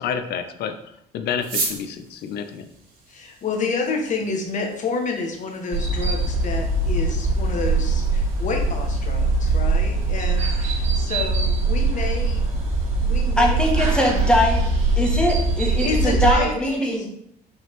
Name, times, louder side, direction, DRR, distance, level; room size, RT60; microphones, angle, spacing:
voice 1, 0.0-2.7, left 7 dB, 75° left, 9 dB, 0.8 m, -29 dB
sound 1, 1.4-16.1, right 3 dB, 55° right, 2.3 m, -40 dB
voice 2, 3.1-12.4 13.0-13.6 15.6-17.1, left 4 dB, 45° left, 2 dB, 1.5 m, -29 dB
sound 2, 5.7-16.3, right 3 dB, 40° right, 2.4 m, -22 dB
voice 3, 13.4-14.7 15.0-17.1, left 1 dB, 5° left, 0 dB, 1.6 m, -21 dB
5.9 x 5.4 x 3.7 m, 0.74 s
cardioid pair, 110°, 17 cm